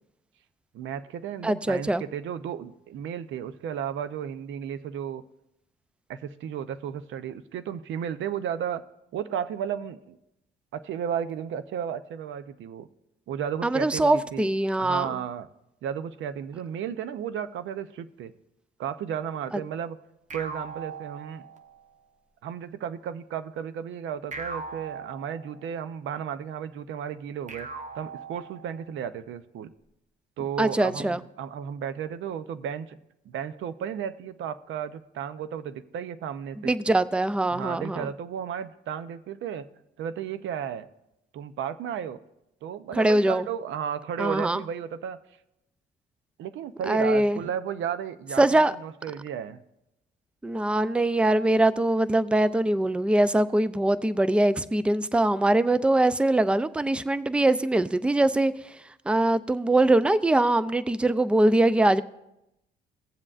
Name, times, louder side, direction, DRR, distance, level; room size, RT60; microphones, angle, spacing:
voice 1, 0.7-5.2 6.1-8.8 9.1-10.2 10.7-12.9 13.3-14.5 14.8-15.5 15.8-18.3 18.8-20.0 20.3-21.5 22.4-27.7 27.9-29.7 30.4-33.0 33.3-36.8 37.5-39.7 40.0-40.9 41.3-42.2 42.6-45.2 46.4-49.6, right 8 dB, 75° right, 13 dB, 0.6 m, -34 dB
voice 2, 1.4-2.0 13.6-15.1 30.6-31.2 36.7-38.1 43.0-43.5 44.2-44.6 46.9-47.4 48.4-48.7 50.4-58.5 59.1-62.0, right 1 dB, 5° right, 14 dB, 0.4 m, -22 dB
sound 1, 20.3-21.9 24.3-25.9 27.5-29.0, right 4 dB, 40° right, 0.8 m, -40 dB
18.0 x 7.5 x 2.5 m, 0.86 s
cardioid pair, 90°, 20 cm